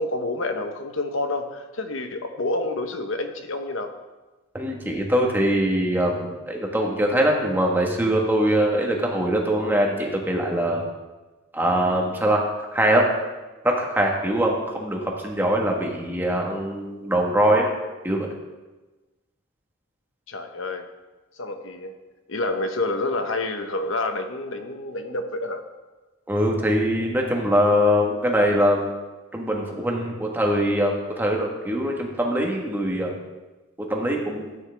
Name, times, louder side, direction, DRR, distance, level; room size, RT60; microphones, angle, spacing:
voice 1, 0.0-3.9 20.3-20.9 21.4-21.9 22.3-25.6, left 2 dB, 65° left, 6 dB, 1.0 m, -28 dB
voice 2, 4.5-10.8 11.5-12.4 12.7-13.0 13.6-17.7 18.0-18.3 26.3-28.9 29.3-33.1 33.9-34.5, equal, 10° right, 0 dB, 1.3 m, -22 dB
13.5 x 9.3 x 3.4 m, 1.2 s
head